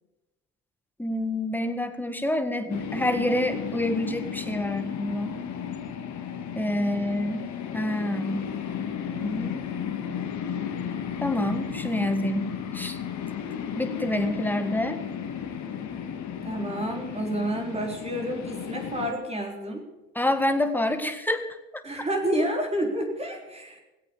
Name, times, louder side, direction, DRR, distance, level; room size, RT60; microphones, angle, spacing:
voice 1, 1.0-5.4 6.6-7.5 7.7-8.5 9.1-9.7 11.2-13.0 13.8-15.0 20.2-21.5, left 1 dB, 5° left, 8 dB, 1.6 m, -27 dB
sound 1, 2.7-19.1, left 8 dB, 55° left, 2.0 m, -34 dB
voice 2, 6.9-7.2 16.4-19.8 21.8-23.8, right 1 dB, 20° right, 1 dB, 4.0 m, -30 dB
18.5 x 8.3 x 7.2 m, 1.0 s
hypercardioid pair, 75°, 35 cm